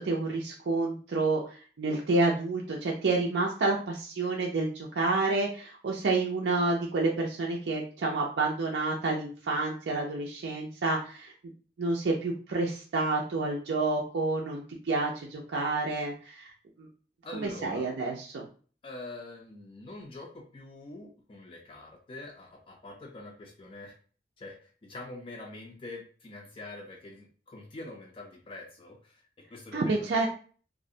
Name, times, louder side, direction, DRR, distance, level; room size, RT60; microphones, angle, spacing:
voice 1, 0.0-11.3 11.8-16.5 16.8-16.9 17.4-18.4 29.7-30.3, right 3 dB, 80° right, -2 dB, 0.4 m, -29 dB
voice 2, 17.2-17.9 18.8-24.0 24.4-29.1 29.5-30.2, left 2 dB, 30° left, 1 dB, 0.4 m, -45 dB
2.4 x 2.0 x 2.7 m, 0.40 s
head